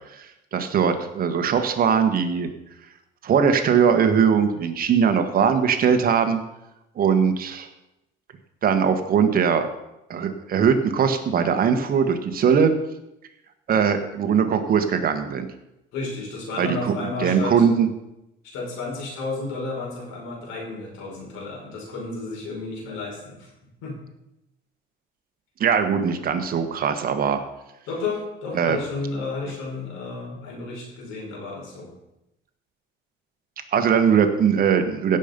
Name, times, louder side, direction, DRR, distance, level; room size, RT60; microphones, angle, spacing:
voice 1, 0.5-2.5 3.2-6.4 6.9-7.7 8.6-9.7 10.1-12.7 13.7-15.5 16.6-16.9 17.2-17.9 25.6-27.4 28.5-28.8 33.7-35.2, right 7 dB, 45° right, 7 dB, 1.5 m, -20 dB
voice 2, 15.9-17.6 18.4-23.5 23.8-23.9 27.9-31.9, left 3 dB, 90° left, -2 dB, 5.6 m, -32 dB
16.5 x 6.8 x 5.3 m, 0.90 s
cardioid pair, 125°, 20 cm